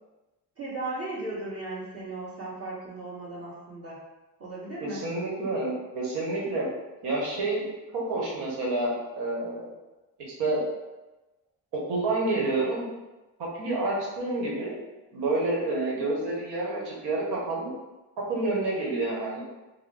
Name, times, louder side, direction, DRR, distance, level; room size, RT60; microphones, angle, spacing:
voice 1, 0.6-4.0 4.4-5.1, right 2 dB, 40° right, -8 dB, 1.5 m, -36 dB
voice 2, 4.8-6.7 7.0-7.7 7.9-9.7 10.3-10.6 11.7-12.9 13.4-14.8 15.1-17.7 18.3-19.4, right 2 dB, 85° right, -4 dB, 1.1 m, -29 dB
3.9 x 2.1 x 3.3 m, 1.1 s
cardioid pair, 110°, 38 cm